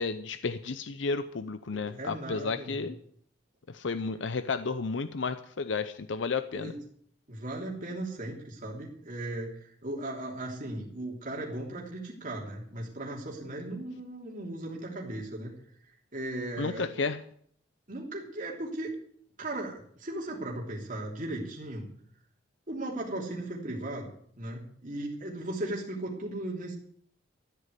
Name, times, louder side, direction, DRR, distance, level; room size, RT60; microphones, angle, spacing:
voice 1, 0.0-3.0 3.7-6.7 16.6-17.2, left 4 dB, 70° left, 12 dB, 0.7 m, -32 dB
voice 2, 1.7-2.8 6.5-6.8 7.3-15.5 16.1-17.0 17.9-18.9 19.4-21.9 22.7-24.1 24.4-26.7, right 1 dB, 45° right, -2 dB, 3.2 m, -37 dB
14.0 x 8.4 x 8.3 m, 0.63 s
head